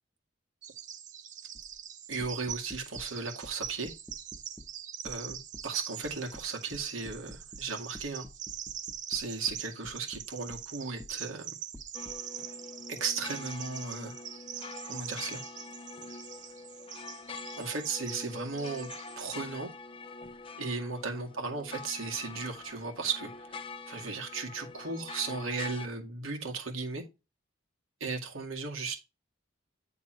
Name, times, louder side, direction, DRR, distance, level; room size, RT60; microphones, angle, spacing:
Bird vocalization bird call bird song, 0.6-19.4, right 9 dB, 40° right, 0.6 m, -43 dB
sound 1, 1.5-1.8 2.2-3.1 3.4-4.7 5.0-5.7 6.0-7.7 7.9-10.6 11.0-11.2 11.7-12.2, left 1 dB, 5° left, 0.9 m, -48 dB
voice 1, 2.1-3.9 5.0-5.4 5.6-8.3 9.1-11.5 12.9-14.2 14.9-15.4 17.6-18.9 19.2-19.7 20.6-23.6 23.9-27.0 28.0-29.0, right 4 dB, 90° right, 2.1 m, -36 dB
sound 2, 11.9-25.9, left 4 dB, 25° left, 0.5 m, -45 dB
9.2 x 3.8 x 4.4 m
head